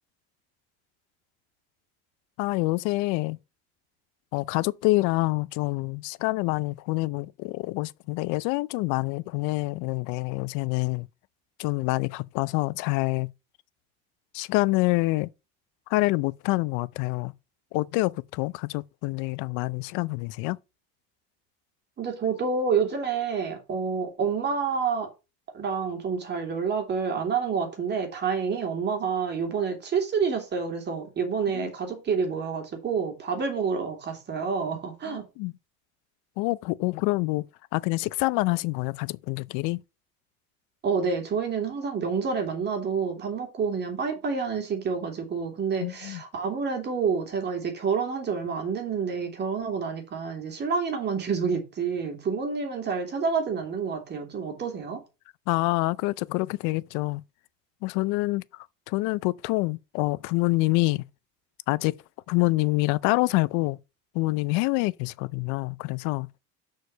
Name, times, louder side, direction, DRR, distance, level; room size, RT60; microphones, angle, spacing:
voice 1, 2.4-3.4 4.3-11.1 11.6-13.3 14.3-15.3 15.9-17.3 17.7-20.6 31.5-31.7 35.1-35.5 36.4-37.5 37.7-39.8 45.8-46.2 55.5-57.2 57.8-61.0 61.7-62.0 62.3-63.8 64.1-66.3, left 22 dB, 70° left, 0.6 m, -26 dB
voice 2, 22.0-25.1 25.5-35.3 40.8-55.0, right 5 dB, 35° right, 2.9 m, -28 dB
6.4 x 4.8 x 6.7 m
cardioid pair, 125°, 31 cm